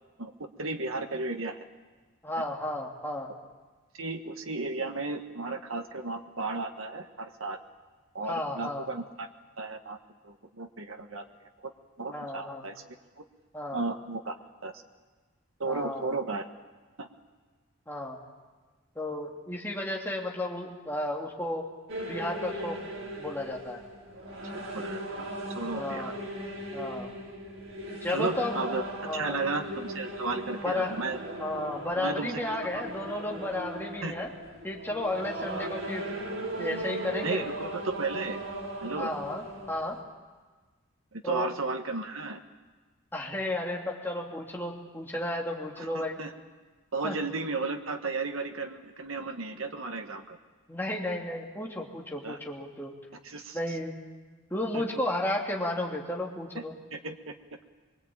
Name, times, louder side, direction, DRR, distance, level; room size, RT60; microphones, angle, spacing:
voice 1, 0.2-1.6 4.0-7.6 8.1-9.3 9.6-10.0 10.2-11.2 11.6-11.7 12.0-12.8 13.2-13.3 13.7-14.3 14.6-14.7 15.6-16.5 17.0-17.1 24.5-26.1 28.1-28.8 29.1-31.2 32.0-32.6 34.0-34.1 35.5-35.7 37.2-38.4 38.8-39.1 41.1-42.4 45.8-46.3 46.9-50.4 52.2-52.4 53.2-53.8 54.7-54.8 56.5-56.6 56.9-57.3, right 3 dB, 90° right, 5 dB, 1.6 m, -34 dB
voice 2, 2.2-3.3 8.3-8.8 12.1-12.6 13.5-13.8 15.6-16.2 17.9-18.2 18.9-21.7 22.1-22.8 23.2-23.8 25.7-26.1 26.7-27.1 28.0-28.7 29.0-29.4 30.6-30.9 31.4-34.3 34.6-36.1 36.6-37.5 39.0-40.0 41.2-41.5 43.1-46.2 47.0-47.2 50.7-52.9 53.5-53.9 54.5-56.7, left 1 dB, 10° left, -2 dB, 3.0 m, -33 dB
sound 1, 21.9-40.0, right 1 dB, 75° right, 4.6 m, -38 dB
24.5 x 23.5 x 8.8 m, 1.4 s
head